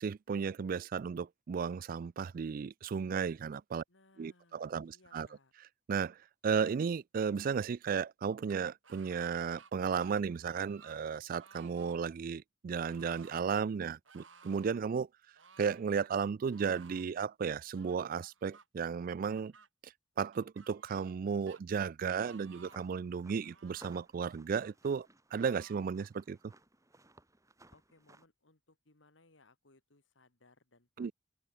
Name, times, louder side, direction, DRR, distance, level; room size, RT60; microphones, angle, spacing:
voice 1, 0.0-3.8 4.2-5.3 5.9-6.2 6.4-15.1 15.6-19.5 19.8-19.9 20.2-26.4 31.0-31.1, right 6 dB, 45° right, 0.3 m, -34 dB
voice 2, 3.9-5.5 27.7-31.1, left 2 dB, 75° left, 2.6 m, -66 dB
sound 1, 8.8-9.7 10.0-11.0 11.4-12.0 12.8-13.5 14.1-14.7 15.4-15.9 16.5-17.1 17.7-18.7 19.3-19.7 20.3-21.2 21.5-21.6 22.1-22.9 23.4-24.0 24.5-24.8 25.3-25.9, right 5 dB, 90° right, 4.4 m, -59 dB
sound 2, 22.0-28.3, right 2 dB, 15° right, 6.4 m, -61 dB
open air
head